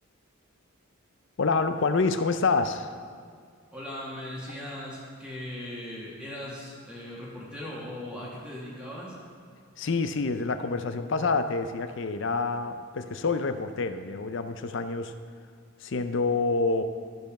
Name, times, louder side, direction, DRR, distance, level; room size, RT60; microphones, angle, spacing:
voice 1, 1.4-2.9 9.8-15.1 15.8-16.8, left 4 dB, 55° left, 10 dB, 0.5 m, -27 dB
voice 2, 3.7-9.1, left 1 dB, 5° right, -6 dB, 1.3 m, -39 dB
12.5 x 5.3 x 5.9 m, 2.1 s
head